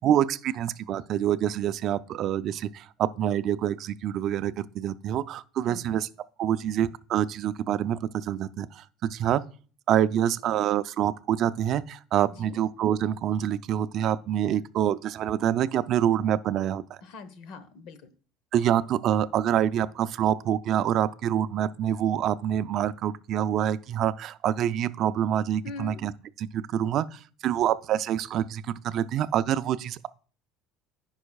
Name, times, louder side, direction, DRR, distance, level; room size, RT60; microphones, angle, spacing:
voice 1, 0.0-6.1 6.4-8.8 9.1-9.4 9.9-16.8 18.5-26.1 26.5-30.1, right 10 dB, 45° right, 0.4 m, -26 dB
voice 2, 5.6-6.0 12.3-12.6 17.0-18.1 25.6-26.0, left 4 dB, 60° left, 1.1 m, -42 dB
14.5 x 5.6 x 2.3 m
cardioid pair, 150°, 0 cm